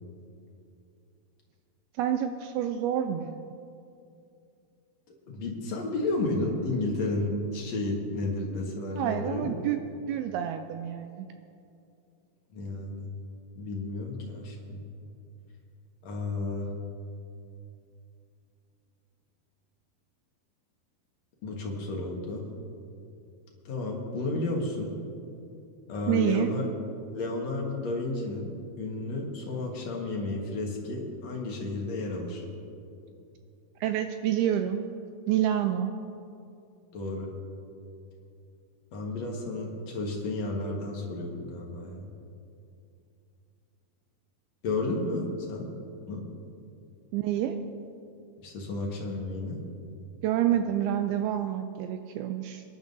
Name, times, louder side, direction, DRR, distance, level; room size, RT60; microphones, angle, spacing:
voice 1, 2.0-3.4 9.0-9.8 10.1-11.3 26.1-26.5 33.8-34.8 35.3-36.0 47.1-47.6 50.2-52.6, right 10 dB, 85° right, 7 dB, 2.3 m, -28 dB
voice 2, 5.3-9.5 12.5-13.1 13.5-14.8 16.0-16.7 21.4-22.5 23.7-24.9 25.9-26.7 27.1-32.4 36.9-37.3 38.9-42.1 44.6-45.7 46.1-46.2 48.4-49.6, left 2 dB, 55° left, -1 dB, 2.1 m, -32 dB
24.5 x 11.0 x 2.7 m, 2.6 s
omnidirectional pair, 4.7 m